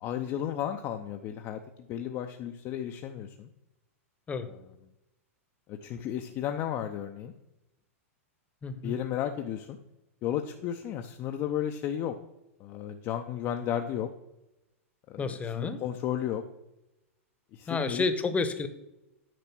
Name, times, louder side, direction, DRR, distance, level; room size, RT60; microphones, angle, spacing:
voice 1, 0.0-1.6 1.9-3.5 4.5-4.6 5.7-7.3 8.8-9.8 10.2-12.2 12.6-14.1 15.1-16.4 17.5-18.1, left 10 dB, 40° left, 6 dB, 0.7 m, -33 dB
voice 2, 8.6-9.0 15.2-15.8 17.7-18.7, left 4 dB, 15° left, 10 dB, 1.0 m, -30 dB
9.3 x 5.1 x 6.0 m, 0.93 s
hypercardioid pair, 115°, 8 cm